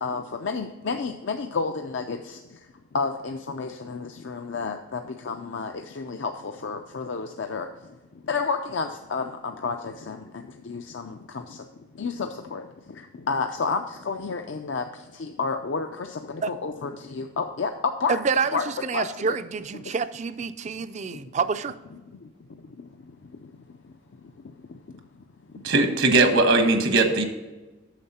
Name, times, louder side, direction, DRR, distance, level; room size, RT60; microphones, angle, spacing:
voice 1, 0.0-2.4 2.9-5.0 5.2-7.7 8.3-10.2 10.7-11.2 12.0-12.6 13.3-14.8 15.2-18.2 18.5-18.7 18.9-19.4, left 4 dB, 65° left, 5 dB, 0.5 m, -30 dB
voice 2, 18.1-21.7, right 5 dB, 35° right, 13 dB, 0.4 m, -27 dB
voice 3, 25.6-27.2, right 2 dB, 75° right, 6 dB, 1.2 m, -19 dB
9.1 x 6.6 x 4.2 m, 1.1 s
head